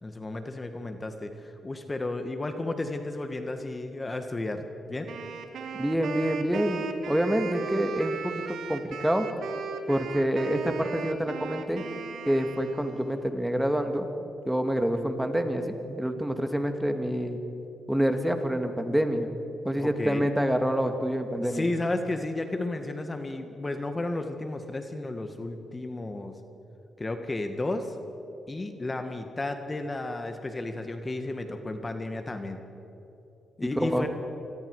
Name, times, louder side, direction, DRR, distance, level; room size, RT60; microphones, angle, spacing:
voice 1, 0.0-5.1 19.8-20.3 21.4-26.4 27.0-28.0 28.5-32.6 33.6-34.1, left 2 dB, 30° left, 7 dB, 1.8 m, -33 dB
Wind instrument woodwind instrument, 5.1-13.2, right 5 dB, 75° right, 1.8 m, -37 dB
voice 2, 5.8-9.3 9.9-11.9 12.3-14.1 14.5-17.4 17.9-19.3 19.6-21.7 33.8-34.1, equal, 5° right, 6 dB, 2.2 m, -27 dB
26.5 x 21.5 x 4.9 m, 3.0 s
supercardioid pair, 55°, 0 cm